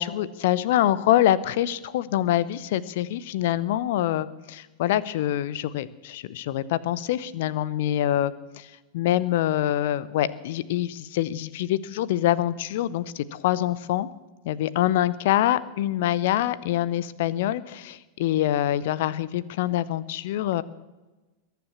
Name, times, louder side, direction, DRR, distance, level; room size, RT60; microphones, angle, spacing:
voice 1, 0.0-14.1 14.4-20.6, left 13 dB, 55° left, 19 dB, 0.7 m, -25 dB
21.5 x 9.4 x 7.1 m, 1.1 s
figure-of-eight pair, 90°, 0 cm